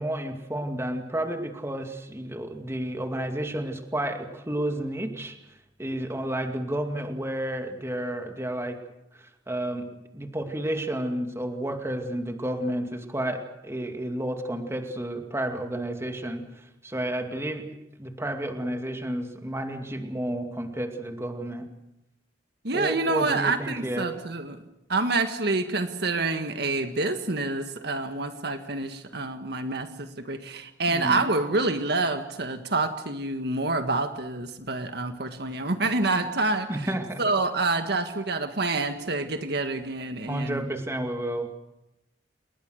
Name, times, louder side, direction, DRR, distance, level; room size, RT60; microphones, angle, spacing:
voice 1, 0.0-8.8 9.1-17.7 18.0-21.7 22.7-24.1 30.9-31.3 36.7-37.2 40.3-41.5, right 1 dB, 15° right, 4 dB, 2.4 m, -31 dB
voice 2, 22.6-24.6 24.9-36.9 37.2-40.6, right 3 dB, 65° right, 7 dB, 1.7 m, -27 dB
30.0 x 20.0 x 6.6 m, 0.89 s
head